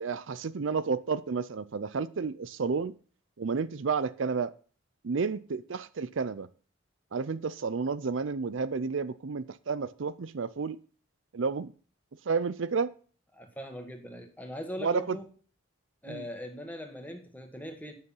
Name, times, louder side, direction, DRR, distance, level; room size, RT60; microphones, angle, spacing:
voice 1, 0.0-2.9 3.4-4.5 5.0-6.5 7.1-10.8 11.3-11.7 12.3-12.9 14.8-15.2 16.1-16.2, right 5 dB, 65° right, 0.5 m, -31 dB
voice 2, 13.3-15.3 16.0-17.9, equal, 10° left, 1.8 m, -40 dB
9.6 x 6.9 x 5.5 m
head